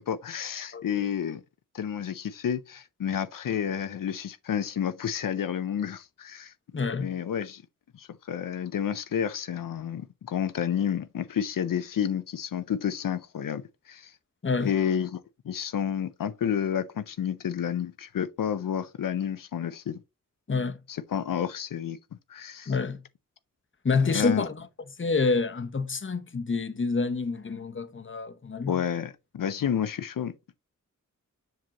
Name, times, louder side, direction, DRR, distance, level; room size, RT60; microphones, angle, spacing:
voice 1, 0.0-1.4 1.7-6.5 7.0-7.6 7.9-14.1 14.6-15.2 15.5-20.0 20.9-22.0 22.3-22.7 24.1-24.4 28.7-30.3, left 8 dB, 85° left, 0.5 m, -30 dB
voice 2, 6.7-7.1 14.4-14.7 20.5-20.8 22.7-23.0 23.8-24.7 25.0-28.8, left 4 dB, 40° left, 0.8 m, -27 dB
7.5 x 6.0 x 2.9 m
wide cardioid pair, 90°, 32 cm